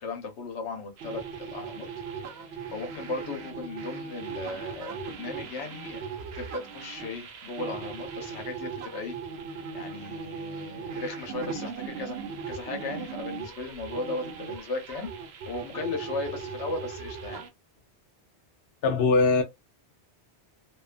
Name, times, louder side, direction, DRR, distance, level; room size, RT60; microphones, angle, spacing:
voice 1, 0.0-1.9 2.2-6.0 6.3-9.2 9.7-12.2 12.5-15.1 15.5-17.4, left 3 dB, 85° left, 1.1 m, -36 dB
sound 1, 1.0-17.5, right 5 dB, 70° right, 0.8 m, -38 dB
voice 2, 18.8-19.4, left 4 dB, 65° left, 0.8 m, -21 dB
2.6 x 2.2 x 2.4 m
omnidirectional pair, 1.1 m